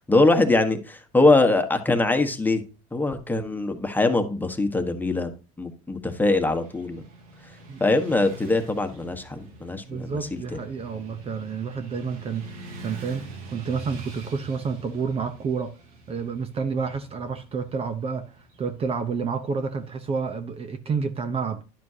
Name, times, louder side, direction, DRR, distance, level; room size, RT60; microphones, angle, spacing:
voice 1, 0.1-2.6 2.9-7.0 7.8-10.6, left 2 dB, 10° left, 1.3 m, -22 dB
Motorcycle / Traffic noise roadway noise, 6.1-20.2, right 2 dB, 80° right, 2.3 m, -45 dB
voice 2, 9.9-15.7 16.1-21.6, right 5 dB, 30° right, 0.9 m, -29 dB
11.0 x 7.4 x 2.9 m
supercardioid pair, 100°, 18 cm